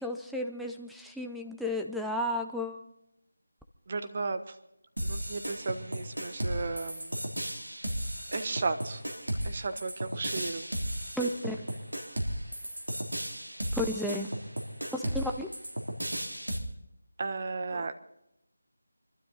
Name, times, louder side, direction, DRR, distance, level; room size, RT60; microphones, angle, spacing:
voice 1, 0.0-2.8 11.2-11.6 13.7-14.3 14.9-15.5, left 1 dB, ahead, 2 dB, 0.7 m, -33 dB
voice 2, 3.9-4.6 5.0-7.1 7.8-8.0 8.3-9.0 9.4-10.7 17.2-17.9, right 3 dB, 40° right, 9 dB, 1.3 m, -34 dB
sound 1, 5.0-16.6, right 1 dB, 90° right, 3.2 m, -35 dB
25.0 x 12.5 x 4.1 m, 0.81 s
figure-of-eight pair, 165°, 0 cm